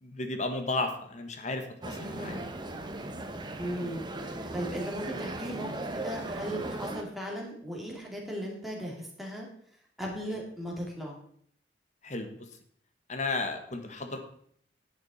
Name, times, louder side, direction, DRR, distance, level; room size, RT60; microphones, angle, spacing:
voice 1, 0.0-2.4 12.0-12.5 13.1-14.3, left 3 dB, 40° left, 6 dB, 1.4 m, -34 dB
sound 1, 1.8-7.0, right 2 dB, 25° right, 0.9 m, -37 dB
voice 2, 2.0-2.4 3.6-4.0 4.5-9.5 10.0-11.2, equal, ahead, -3 dB, 2.6 m, -37 dB
10.5 x 8.9 x 4.2 m, 0.63 s
head